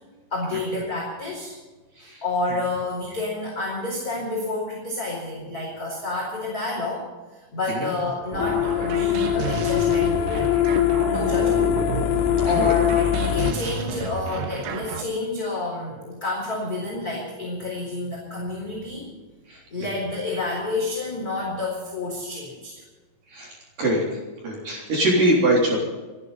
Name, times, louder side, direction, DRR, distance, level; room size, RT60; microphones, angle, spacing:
voice 1, 0.3-1.6 2.0-7.1 7.3-10.5 11.0-11.7 12.1-19.1 19.7-22.8, left 3 dB, 20° left, -5 dB, 4.5 m, -29 dB
sound 1, 8.3-15.0, right 7 dB, 80° right, 4.0 m, -31 dB
sound 2, 8.4-13.5, left 11 dB, 80° left, 3.3 m, -22 dB
voice 2, 23.3-24.0 24.4-25.8, right 1 dB, 45° right, -3 dB, 4.7 m, -23 dB
29.5 x 11.5 x 4.1 m, 1.3 s
omnidirectional pair, 5.9 m